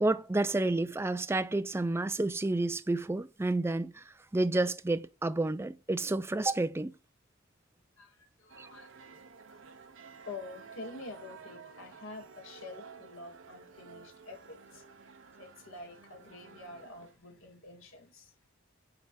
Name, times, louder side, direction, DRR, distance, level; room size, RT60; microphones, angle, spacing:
voice 1, 0.0-4.0 4.3-6.9 8.6-8.7, right 2 dB, 15° right, 0.4 m, -30 dB
voice 2, 8.0-9.1 10.2-18.4, left 3 dB, 90° left, 2.0 m, -48 dB
sound 1, 8.5-17.2, right 5 dB, 70° right, 0.9 m, -52 dB
8.7 x 3.5 x 4.3 m
head